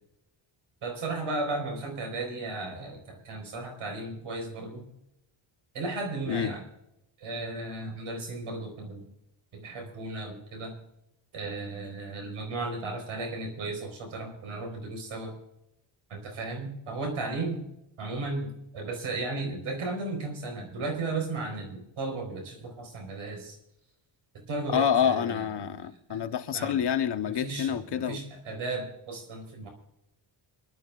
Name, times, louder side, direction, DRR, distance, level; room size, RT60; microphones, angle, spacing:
voice 1, 0.8-4.9 5.7-6.6 7.2-9.1 9.5-10.7 11.3-15.3 16.1-17.7 18.0-23.6 24.4-25.4 26.1-26.2 26.5-26.8 27.2-29.7, right 3 dB, 90° right, 4.6 m, -35 dB
voice 2, 24.7-28.2, left 8 dB, 55° left, 1.1 m, -27 dB
25.5 x 12.0 x 2.5 m
wide cardioid pair, 115°, 48 cm